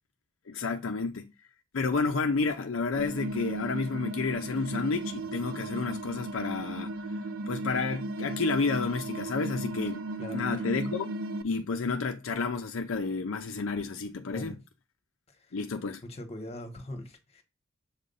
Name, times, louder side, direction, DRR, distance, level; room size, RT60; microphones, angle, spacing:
voice 1, 0.5-1.3 1.7-6.9 7.5-10.0 10.3-11.1 11.4-14.5 15.5-16.0, left 4 dB, 65° left, 0.5 m, -30 dB
sound 1, 2.9-11.4, right 1 dB, 80° right, 0.6 m, -36 dB
voice 2, 16.0-17.4, left 1 dB, 30° left, 1.2 m, -41 dB
7.2 x 2.6 x 5.4 m
head